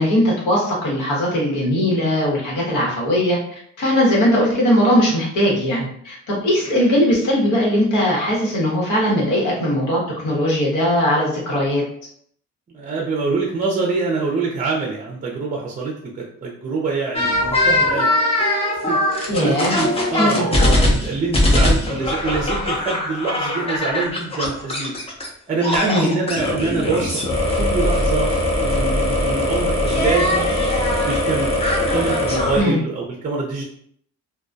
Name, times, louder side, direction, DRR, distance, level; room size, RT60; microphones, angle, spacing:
voice 1, 0.0-3.4 3.8-11.8 19.3-19.8 20.1-20.5 25.8-26.1 32.5-32.8, equal, 85° left, -4 dB, 1.1 m, -19 dB
voice 2, 12.7-18.1 18.9-24.9 25.5-27.2 27.6-28.3 28.6-30.5 31.0-31.6 31.9-33.6, right 4 dB, 25° right, -1 dB, 0.5 m, -25 dB
sound 1, 17.1-25.3 25.6-32.6, left 1 dB, 20° left, 0.6 m, -20 dB
2.2 x 2.2 x 2.5 m, 0.66 s
cardioid pair, 90°, 30 cm